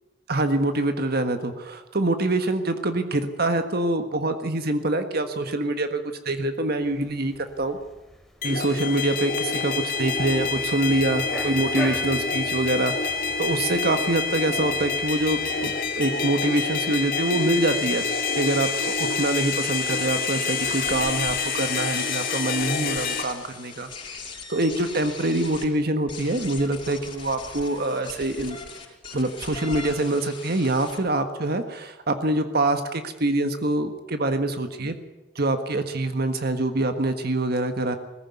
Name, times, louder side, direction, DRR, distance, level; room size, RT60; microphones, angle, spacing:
voice 1, 0.3-6.0 6.2-7.8 8.4-9.7 10.0-18.0 18.3-23.9 24.5-28.6 29.1-34.9 35.3-38.0, right 2 dB, 60° right, 7 dB, 1.6 m, -25 dB
sound 1, 6.8-21.3, equal, ahead, 3.5 m, -43 dB
sound 2, 8.4-23.2, left 5 dB, 55° left, 2.3 m, -27 dB
sound 3, 20.5-25.7 26.1-31.0, left 4 dB, 30° left, 6.0 m, -39 dB
19.0 x 15.5 x 9.5 m, 1.0 s
head